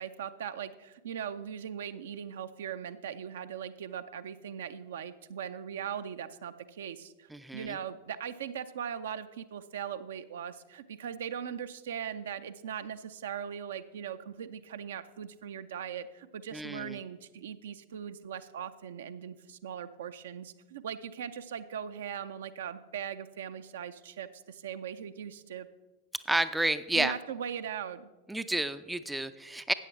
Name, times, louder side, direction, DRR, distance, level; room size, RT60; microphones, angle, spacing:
voice 1, 0.0-25.7 26.9-28.1, right 8 dB, 60° right, 11 dB, 0.5 m, -39 dB
voice 2, 7.3-7.7 16.5-17.0 26.3-27.1 28.3-29.7, right 1 dB, 5° right, 12 dB, 0.4 m, -30 dB
13.5 x 9.0 x 3.1 m, 1.2 s
figure-of-eight pair, 90°, 0 cm